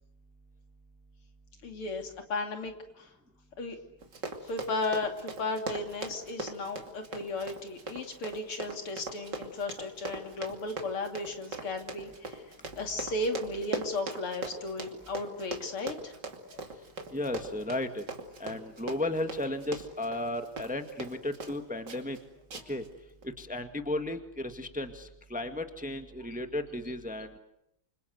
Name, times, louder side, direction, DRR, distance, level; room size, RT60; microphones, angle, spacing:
voice 1, 1.6-3.1 3.6-3.8 4.4-12.4 12.8-16.1 16.5-16.6, left 2 dB, 75° left, 4 dB, 3.7 m, -35 dB
Run, 4.0-21.6 21.9-22.2 22.5-22.9 23.2-23.3, right 3 dB, 50° right, 3.1 m, -40 dB
voice 2, 17.1-18.0 18.4-22.2 22.5-22.8 23.2-27.4, left 1 dB, 5° right, 7 dB, 1.5 m, -34 dB
28.5 x 26.0 x 8.1 m, 0.84 s
omnidirectional pair, 2.4 m